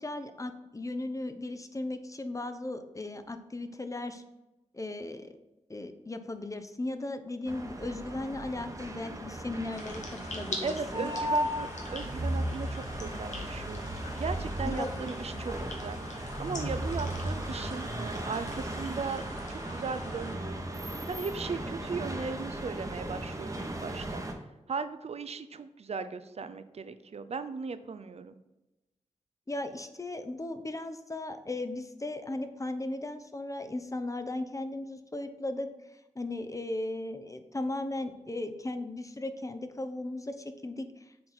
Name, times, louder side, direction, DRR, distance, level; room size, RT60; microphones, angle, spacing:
voice 1, 0.0-4.2 4.7-5.3 5.7-11.1 14.8-14.9 29.5-35.7 36.2-40.9, left 2 dB, 25° left, 9 dB, 0.7 m, -36 dB
sound 1, 7.5-24.3, right 1 dB, 25° right, 1.1 m, -36 dB
sound 2, 9.7-20.3, left 3 dB, 80° left, 1.2 m, -45 dB
voice 2, 10.6-19.2 19.5-20.7 21.1-24.2 24.7-28.4, right 5 dB, 60° right, 12 dB, 0.5 m, -37 dB
6.5 x 4.0 x 4.3 m, 1.0 s
cardioid pair, 50°, 12 cm